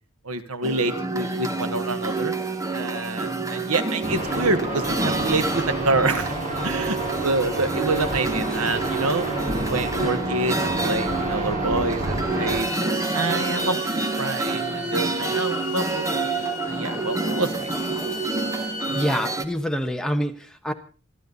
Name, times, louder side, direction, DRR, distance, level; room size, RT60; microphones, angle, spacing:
voice 1, 0.2-2.3 2.7-6.3 6.6-7.0 7.2-9.3 9.7-12.7 13.1-17.7, right 3 dB, 75° right, 10 dB, 1.6 m, -27 dB
sound 1, 0.6-19.5, right 3 dB, 15° right, 1.3 m, -28 dB
sound 2, 4.0-12.6, right 1 dB, 35° right, 6.7 m, -30 dB
Bowed string instrument, 12.4-19.1, left 2 dB, 60° left, 7.4 m, -36 dB
voice 2, 18.9-20.7, equal, 5° left, 5 dB, 1.2 m, -26 dB
27.5 x 11.5 x 4.1 m, 0.36 s
head